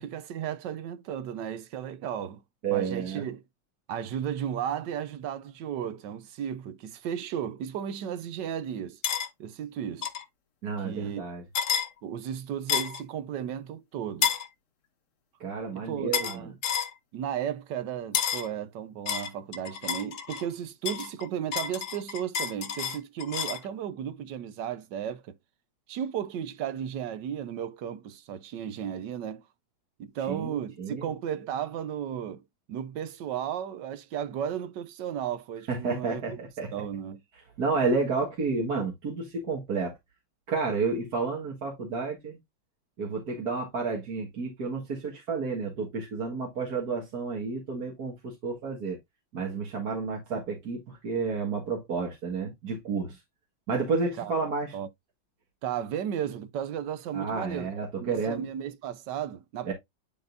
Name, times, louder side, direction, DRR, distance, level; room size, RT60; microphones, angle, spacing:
voice 1, 0.0-2.4 2.7-3.4 3.9-9.0 9.4-10.1 10.8-11.2 12.0-14.3 15.7-16.5 17.1-25.3 25.9-29.4 30.0-32.4 32.7-36.4 36.7-37.2 54.2-54.3 54.7-54.9 55.6-59.7, right 9 dB, 65° right, 1.3 m, -34 dB
voice 2, 2.6-3.2 10.6-11.4 15.4-16.4 30.3-31.1 35.7-36.7 37.6-40.0 40.5-42.4 43.0-49.0 49.3-53.2 53.7-54.8 57.1-58.4 59.6-59.7, right 4 dB, 50° right, 2.1 m, -31 dB
sound 1, 9.0-9.3 10.0-10.2 11.5-11.9 12.7-13.0 14.2-14.5 16.1-16.4 16.6-16.9 18.1-18.5 19.1-20.5 20.9-23.6, left 8 dB, 60° left, 0.8 m, -30 dB
10.5 x 3.9 x 2.5 m
omnidirectional pair, 2.2 m